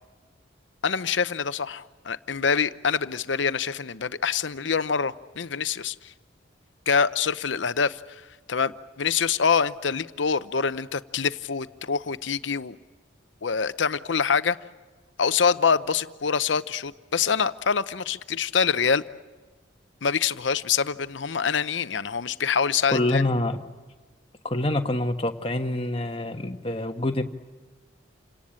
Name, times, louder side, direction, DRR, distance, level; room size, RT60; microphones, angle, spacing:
voice 1, 0.8-6.1 6.9-12.8 13.4-14.6 15.2-19.0 20.0-23.2, left 6 dB, 70° left, 13 dB, 0.7 m, -25 dB
voice 2, 22.9-23.6 24.4-27.2, left 1 dB, 30° left, 5 dB, 1.3 m, -26 dB
28.5 x 18.0 x 8.8 m, 1.3 s
head